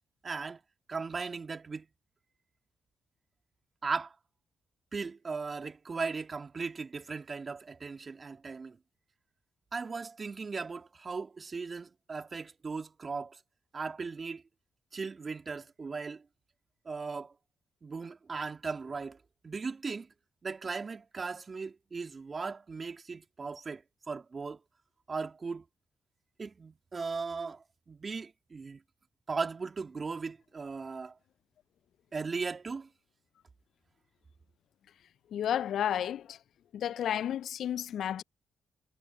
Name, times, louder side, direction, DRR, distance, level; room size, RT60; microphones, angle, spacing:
voice 1, 0.2-0.6 0.9-1.9 3.8-4.2 4.9-8.8 9.7-13.4 13.7-14.4 14.9-16.2 16.8-17.3 17.8-19.2 19.4-20.1 20.4-24.6 25.1-25.6 26.4-28.8 29.3-31.1 32.1-32.9, right 4 dB, 45° right, 2.6 m, -37 dB
voice 2, 35.3-36.4 36.7-38.2, left 10 dB, 70° left, 0.4 m, -32 dB
hypercardioid pair, 45°, 0 cm